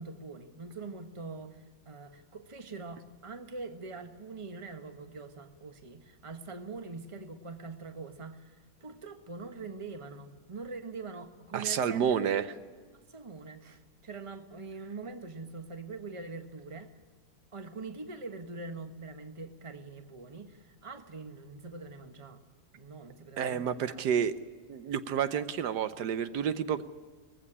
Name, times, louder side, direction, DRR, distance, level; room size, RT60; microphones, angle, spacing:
voice 1, 0.0-12.4 13.1-16.9 17.5-22.4 22.7-24.0, right 4 dB, 20° right, 7 dB, 1.2 m, -43 dB
voice 2, 11.5-12.4 23.4-24.3 24.7-26.8, right 8 dB, 75° right, 12 dB, 1.4 m, -29 dB
20.0 x 15.5 x 9.9 m, 1.6 s
omnidirectional pair, 1.8 m